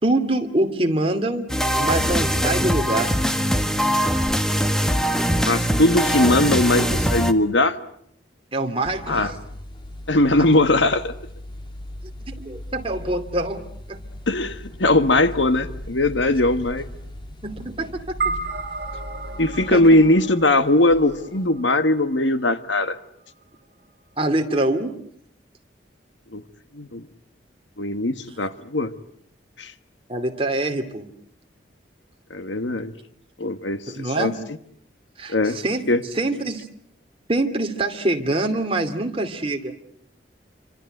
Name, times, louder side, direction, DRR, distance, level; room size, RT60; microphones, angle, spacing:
voice 1, 0.0-1.5 1.8-3.1 8.5-9.4 10.4-10.5 12.3-13.6 13.9-14.0 17.4-18.2 19.7-19.8 24.2-25.0 30.1-31.1 33.9-34.4 35.2-35.8 36.1-36.7 37.3-39.8, right 2 dB, 30° right, 2.5 m, -24 dB
sound 1, 1.5-7.3, equal, 5° left, 1.3 m, -22 dB
voice 2, 5.5-7.8 9.1-9.3 10.1-11.1 14.3-16.8 19.4-23.0 26.3-26.4 26.7-27.0 27.8-28.9 29.6-29.7 32.3-32.9 33.4-34.3 35.3-35.6 35.9-36.0, left 2 dB, 75° left, 1.5 m, -20 dB
sound 2, 8.8-21.5, left 1 dB, 25° left, 2.8 m, -38 dB
sound 3, 18.2-22.8, right 3 dB, 55° right, 2.9 m, -33 dB
26.5 x 26.0 x 7.9 m
head